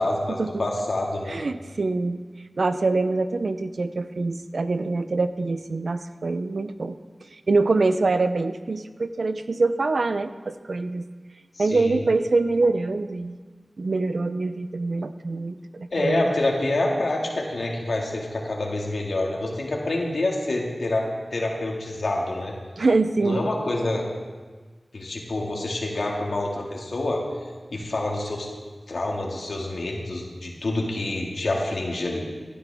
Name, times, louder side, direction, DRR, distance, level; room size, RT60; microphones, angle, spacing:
voice 1, 0.0-1.4 11.6-12.0 15.9-22.5 23.2-24.0 24.9-27.2 27.7-28.5 28.9-32.3, left 2 dB, 85° left, -1 dB, 2.0 m, -27 dB
voice 2, 1.3-2.2 2.6-7.0 7.3-11.0 11.6-13.4 13.8-16.3 22.8-23.5, right 3 dB, 80° right, 11 dB, 0.6 m, -24 dB
15.5 x 11.5 x 3.6 m, 1.4 s
wide cardioid pair, 45°, 0 cm